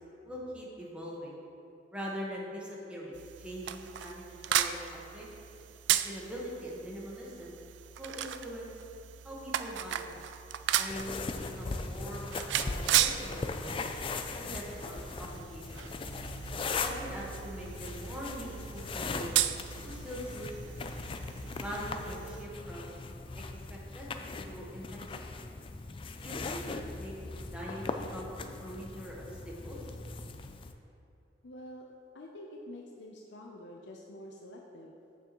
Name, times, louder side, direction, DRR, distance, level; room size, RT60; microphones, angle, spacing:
voice 1, 0.2-1.4 1.9-5.3 5.9-7.6 8.0-8.8 9.2-10.2 10.7-13.8 14.3-15.7 16.8-19.3 19.8-20.8 21.5-22.9 23.7-24.1 24.4-25.3 26.2-26.6 27.0-29.8, equal, 5° right, -5 dB, 1.3 m, -42 dB
sound 1, 3.1-22.5, right 11 dB, 80° right, 0.3 m, -36 dB
sound 2, 10.9-30.7, left 3 dB, 30° left, 0.3 m, -39 dB
voice 2, 31.4-31.9 32.1-35.0, left 1 dB, 80° left, 0 dB, 0.6 m, -47 dB
8.9 x 6.8 x 3.0 m, 2.8 s
head